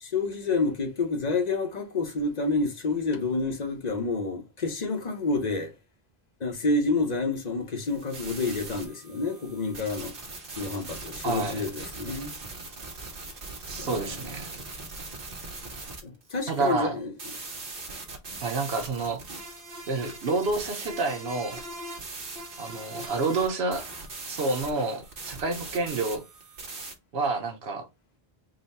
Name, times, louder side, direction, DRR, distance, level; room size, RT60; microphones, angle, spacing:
voice 1, 0.0-5.7 6.4-10.1 10.6-12.3 13.8-14.2 16.0-17.1, left 3 dB, 45° left, 0.9 m, -29 dB
sound 1, 7.9-26.9, right 2 dB, 60° right, 1.2 m, -40 dB
voice 2, 11.2-11.7 13.7-14.5 16.5-17.0 18.4-19.2 19.9-21.6 22.6-23.9 24.3-26.2 27.1-27.9, right 3 dB, 80° right, 1.1 m, -29 dB
4.0 x 2.2 x 4.0 m
omnidirectional pair, 1.1 m